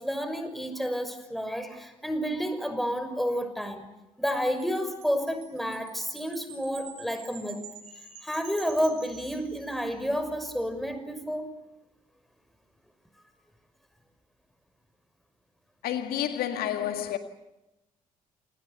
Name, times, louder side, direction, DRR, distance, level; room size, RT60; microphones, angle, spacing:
voice 1, 0.0-3.9 4.2-7.6 8.2-11.5, equal, ahead, 6.1 m, -30 dB
Wind chime, 4.3-10.0, right 6 dB, 70° right, 7.9 m, -49 dB
voice 2, 15.8-17.2, left 11 dB, 60° left, 1.9 m, -29 dB
29.0 x 26.0 x 6.9 m
figure-of-eight pair, 50°, 18 cm